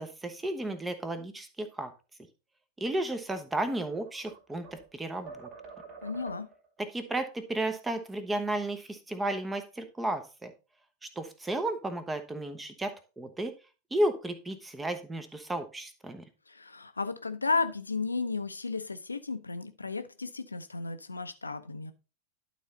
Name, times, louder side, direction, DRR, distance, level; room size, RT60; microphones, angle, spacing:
voice 1, 0.0-1.9 2.8-5.5 6.8-10.5 11.0-13.5 13.9-16.2, right 1 dB, 10° right, 9 dB, 1.0 m, -33 dB
sound 1, 3.9-4.9 5.3-6.7, right 5 dB, 40° right, 2.4 m, -47 dB
voice 2, 6.0-6.5 16.5-21.9, left 4 dB, 80° left, 10 dB, 0.7 m, -33 dB
11.5 x 4.1 x 3.9 m, 0.32 s
figure-of-eight pair, 90°, 0 cm